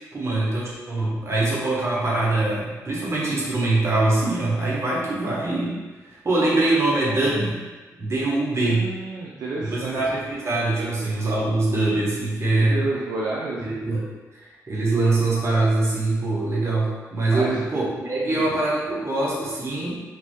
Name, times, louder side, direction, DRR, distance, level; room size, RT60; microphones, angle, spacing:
voice 1, 0.1-5.8 6.2-7.6 8.0-8.9 9.6-12.8 13.6-14.1 14.4-19.9, right 2 dB, 45° right, -5 dB, 1.0 m, -23 dB
voice 2, 8.6-10.0 10.8-11.1 12.5-13.7 17.3-17.7 18.2-18.4, right 3 dB, 70° right, -5 dB, 0.4 m, -30 dB
3.0 x 2.6 x 2.2 m, 1.2 s
supercardioid pair, 45°, 7 cm